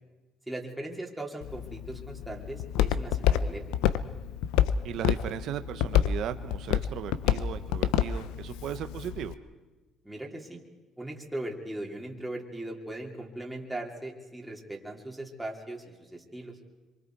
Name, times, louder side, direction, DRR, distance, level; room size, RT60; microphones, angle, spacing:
voice 1, 0.5-3.6 10.0-10.6 11.0-16.5, right 1 dB, 5° right, -1 dB, 3.1 m, -39 dB
Walk footsteps, 1.4-9.3, left 10 dB, 90° left, 0.7 m, -29 dB
voice 2, 4.8-9.3, right 10 dB, 65° right, 8 dB, 1.0 m, -36 dB
27.0 x 24.0 x 4.7 m, 1.2 s
cardioid pair, 105°, 0 cm